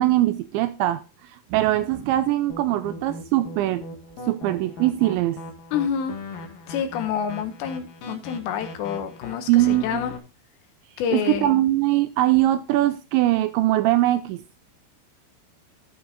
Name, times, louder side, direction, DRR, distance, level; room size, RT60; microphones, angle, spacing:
voice 1, 0.0-3.8 4.3-5.4 9.5-10.0 11.1-14.4, right 15 dB, 80° right, 2.9 m, -22 dB
sound 1, 2.5-10.2, left 2 dB, 55° left, 2.8 m, -39 dB
voice 2, 5.7-6.1 6.7-10.2 11.0-11.6, left 8 dB, 75° left, 3.0 m, -28 dB
13.0 x 6.8 x 3.9 m
omnidirectional pair, 5.4 m